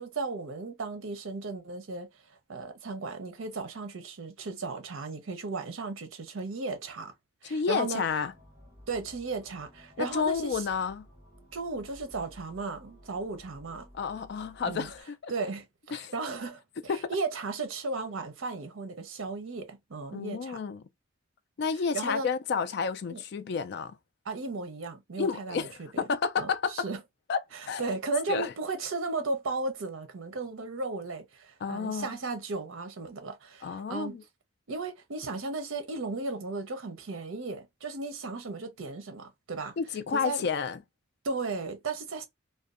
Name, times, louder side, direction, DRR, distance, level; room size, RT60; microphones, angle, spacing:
voice 1, 0.0-2.1 2.5-7.1 7.4-8.0 8.9-10.6 11.5-13.9 14.7-14.9 15.3-16.6 17.1-20.6 21.9-22.3 23.1-23.2 24.2-26.0 26.4-27.0 27.5-34.2 34.7-39.7 40.1-40.5 41.2-42.3, right 3 dB, 70° right, 0.6 m, -35 dB
voice 2, 7.4-8.3 10.0-11.1 13.9-15.3 15.9-16.1 16.9-17.1 20.1-20.8 21.6-24.0 25.2-26.9 27.3-27.4 27.7-28.0 28.3-28.5 31.6-32.1 33.6-34.2 39.8-40.8, left 5 dB, 50° left, 0.3 m, -30 dB
sound 1, 8.1-15.0, equal, 15° right, 0.9 m, -55 dB
2.6 x 2.2 x 2.3 m
head